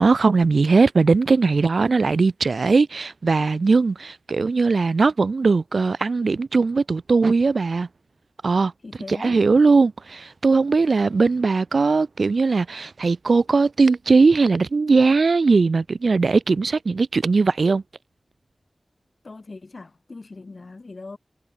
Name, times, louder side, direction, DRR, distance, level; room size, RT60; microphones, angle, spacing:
voice 1, 0.0-7.9 8.4-8.7 9.1-17.8, right 4 dB, 80° right, 1.8 m, -19 dB
voice 2, 8.8-9.4 19.2-21.2, left 3 dB, 60° left, 7.1 m, -40 dB
wide cardioid pair, 65°, 0 cm